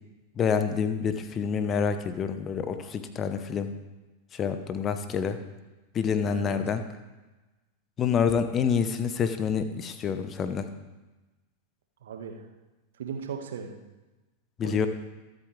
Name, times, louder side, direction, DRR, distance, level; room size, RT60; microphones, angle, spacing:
voice 1, 0.4-3.7 4.3-5.4 5.9-6.8 8.0-10.7 14.6-14.9, left 6 dB, 25° left, 10 dB, 1.2 m, -27 dB
voice 2, 12.0-12.3 13.0-13.7 14.6-14.9, right 6 dB, 60° right, 4 dB, 1.7 m, -37 dB
23.5 x 8.5 x 3.4 m, 1.1 s
figure-of-eight pair, 90°, 0 cm